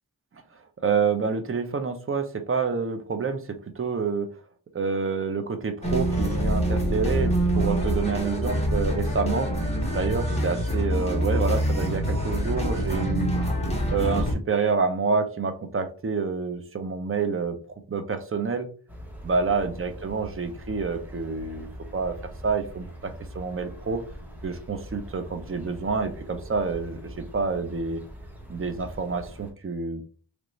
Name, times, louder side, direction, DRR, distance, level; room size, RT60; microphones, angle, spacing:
voice 1, 0.8-3.4 3.8-4.3 4.7-9.5 9.9-13.3 13.9-17.6 17.9-18.7 19.2-21.7 21.9-22.1 22.4-24.0 24.4-28.0 28.5-30.0, right 5 dB, 35° right, 7 dB, 0.5 m, -28 dB
sound 1, 5.8-14.3, equal, 15° left, 1.1 m, -25 dB
sound 2, 18.9-29.5, equal, 5° right, 0.8 m, -42 dB
3.1 x 2.5 x 3.1 m, 0.40 s
wide cardioid pair, 100°, 40 cm